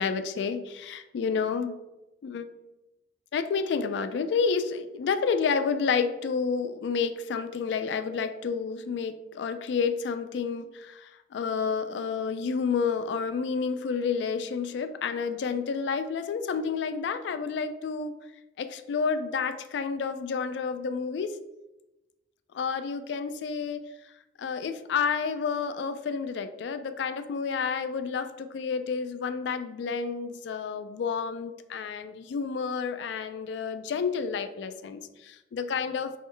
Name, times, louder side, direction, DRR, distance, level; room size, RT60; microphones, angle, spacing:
voice 1, 0.0-1.8 2.2-2.5 3.3-18.1 18.6-21.4 22.5-23.8 24.4-36.1, left 5 dB, 70° left, 11 dB, 0.3 m, -30 dB
3.8 x 3.0 x 3.2 m, 0.99 s
head